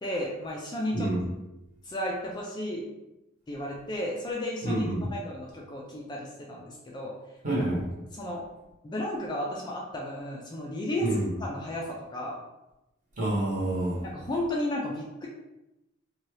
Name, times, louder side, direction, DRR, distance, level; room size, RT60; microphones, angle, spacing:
voice 1, 0.0-1.1 1.8-2.8 3.5-4.8 5.1-7.1 8.1-8.4 8.8-11.1 11.4-12.4 14.0-15.3, left 1 dB, 20° left, -3 dB, 0.3 m, -33 dB
voice 2, 4.6-5.1 7.4-7.9 11.0-11.3 13.2-14.0, right 1 dB, 35° right, -5 dB, 0.9 m, -28 dB
2.7 x 2.3 x 3.1 m, 0.95 s
head